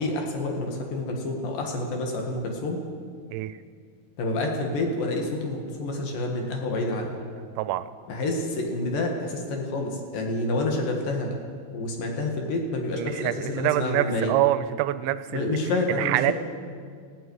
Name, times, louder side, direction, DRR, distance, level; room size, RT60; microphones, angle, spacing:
voice 1, 0.0-2.8 4.2-7.2 8.1-11.3 11.7-14.3 15.3-16.3, left 2 dB, 65° left, 2 dB, 3.1 m, -28 dB
voice 2, 7.6-7.9 13.0-15.6 15.9-16.3, right 15 dB, 85° right, 14 dB, 2.6 m, -25 dB
19.0 x 15.0 x 4.7 m, 2.1 s
omnidirectional pair, 4.7 m